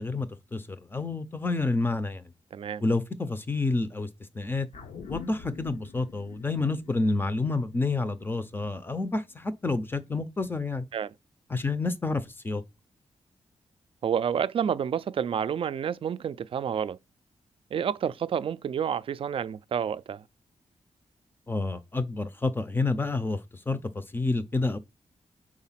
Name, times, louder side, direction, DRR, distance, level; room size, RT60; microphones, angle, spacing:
voice 1, 0.0-2.2 2.8-4.1 4.4-4.7 5.1-10.9 11.5-12.6 21.5-23.4 23.7-24.8, left 3 dB, 15° left, 0.5 m, -29 dB
voice 2, 2.5-2.8 10.9-11.1 14.0-17.0 17.7-20.2, right 8 dB, 50° right, 0.3 m, -29 dB
sound 1, 4.7-9.3 9.7-9.8, left 6 dB, 75° left, 0.8 m, -47 dB
4.9 x 4.2 x 5.6 m
wide cardioid pair, 170°, 12 cm